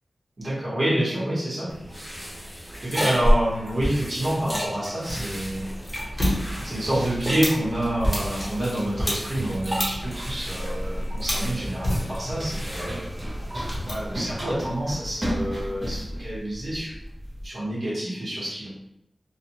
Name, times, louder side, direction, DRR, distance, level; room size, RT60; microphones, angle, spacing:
voice 1, 0.4-2.4 2.8-5.7 6.1-6.2 6.5-13.3 13.8-16.9 17.4-18.7, right 1 dB, 60° right, -7 dB, 1.2 m, -28 dB
sound 1, 1.7-13.8, equal, 5° right, 1.0 m, -30 dB
sound 2, 5.1-14.3, equal, 25° left, 1.0 m, -32 dB
Run, 9.7-17.5, equal, 30° right, 1.1 m, -34 dB
2.4 x 2.4 x 2.9 m, 0.80 s
wide cardioid pair, 80°, 0 cm